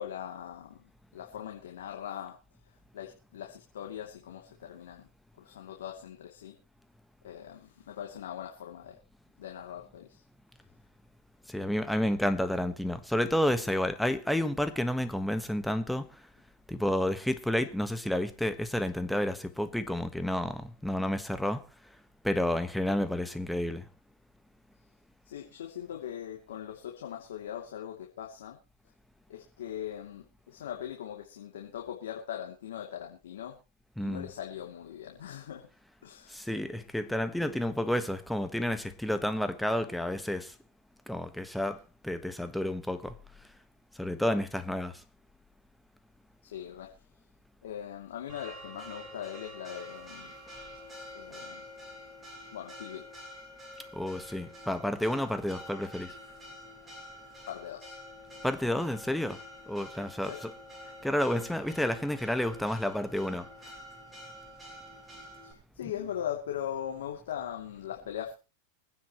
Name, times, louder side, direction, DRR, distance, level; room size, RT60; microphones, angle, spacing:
voice 1, 0.0-2.4 2.9-5.1 5.4-6.5 7.2-9.0 9.4-10.2 25.3-28.6 29.3-33.6 34.0-35.7 36.0-36.5 46.4-46.9 47.6-50.3 51.1-51.6 52.5-53.0 57.5-58.0 60.3-60.4 65.4-68.3, left 10 dB, 85° left, 2.8 m, -40 dB
voice 2, 11.5-16.1 16.7-21.6 22.2-23.8 34.0-34.3 36.3-40.5 41.1-43.1 44.0-45.0 53.9-56.1 58.4-59.4 59.7-60.5 61.0-63.5, left 1 dB, ahead, 1.4 m, -30 dB
Church bell, 48.3-65.5, equal, 15° right, 6.7 m, -47 dB
24.5 x 9.7 x 3.1 m
hypercardioid pair, 125°, 0 cm